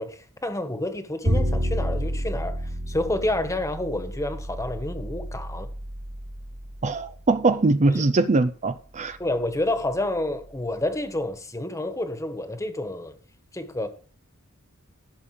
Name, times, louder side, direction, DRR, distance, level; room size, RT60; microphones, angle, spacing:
voice 1, 0.0-5.7 7.9-8.0 9.2-13.2 13.5-13.9, left 1 dB, 15° left, 1.5 m, -29 dB
Bowed string instrument, 1.2-7.4, equal, 65° right, 3.8 m, -30 dB
voice 2, 6.8-9.2, right 3 dB, 30° right, 0.5 m, -22 dB
15.5 x 7.0 x 5.0 m
head